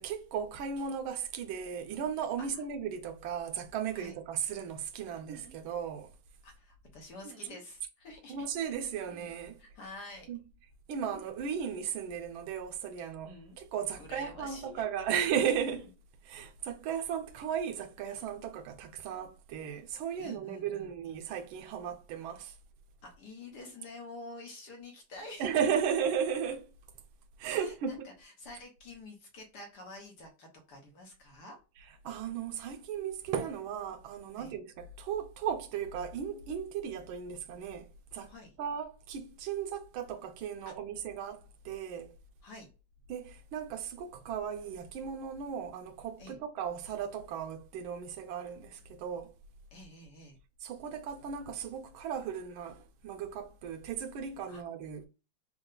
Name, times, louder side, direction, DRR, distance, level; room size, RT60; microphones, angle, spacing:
voice 1, 0.0-6.1 8.3-9.6 10.3-10.4 10.9-15.9 16.2-22.5 25.4-26.7 27.4-28.1 32.0-38.3 38.6-42.1 43.1-49.3 50.6-55.1, right 8 dB, 85° right, 1.5 m, -36 dB
sound 1, 5.3-5.6 7.2-7.6 9.1-9.3 11.1-11.3 13.2-13.6 15.7-15.9, right 4 dB, 60° right, 1.4 m, -51 dB
voice 2, 6.4-8.5 9.6-10.3 14.0-15.2 20.2-20.9 23.0-25.6 27.6-31.6 34.4-34.5 38.3-38.6 40.6-40.7 42.4-42.7 46.2-46.4 49.7-50.4 54.5-54.6, left 2 dB, 60° left, 1.5 m, -48 dB
4.4 x 2.2 x 3.7 m
omnidirectional pair, 2.2 m